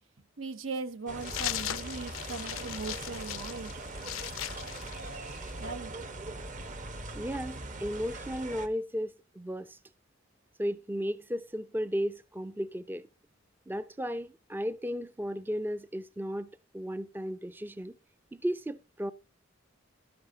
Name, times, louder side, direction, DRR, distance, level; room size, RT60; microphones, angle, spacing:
voice 1, 0.4-3.7 5.6-5.9, right 4 dB, 75° right, 1.1 m, -39 dB
sound 1, 1.1-8.7, right 2 dB, 40° right, 1.3 m, -41 dB
sound 2, 1.2-5.6, left 14 dB, 80° left, 0.4 m, -38 dB
voice 2, 7.1-9.8 10.6-13.1 13.7-16.5 16.7-17.9 18.3-19.1, equal, 10° right, 0.4 m, -34 dB
12.5 x 10.5 x 2.8 m
head